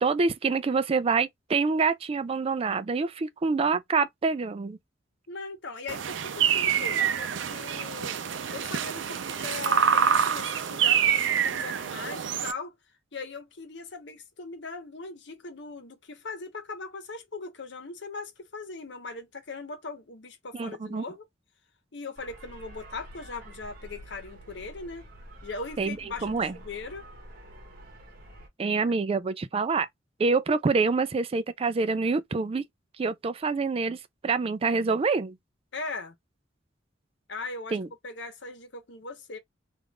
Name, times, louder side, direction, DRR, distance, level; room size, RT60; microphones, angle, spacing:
voice 1, 0.0-4.8 20.5-21.0 25.8-26.0 26.2-26.5 28.6-29.9 30.2-32.6 33.0-35.4 37.7-37.9, right 4 dB, 30° right, 0.4 m, -26 dB
voice 2, 5.3-8.2 8.5-12.7 13.1-21.2 21.9-25.1 25.4-27.0 28.7-28.8 35.7-36.2 37.3-37.8 38.0-39.4, left 3 dB, 70° left, 0.9 m, -39 dB
sound 1, 5.9-12.5, right 8 dB, 85° right, 0.5 m, -26 dB
sound 2, 22.2-28.5, equal, 55° right, 1.1 m, -48 dB
3.4 x 2.5 x 2.3 m
head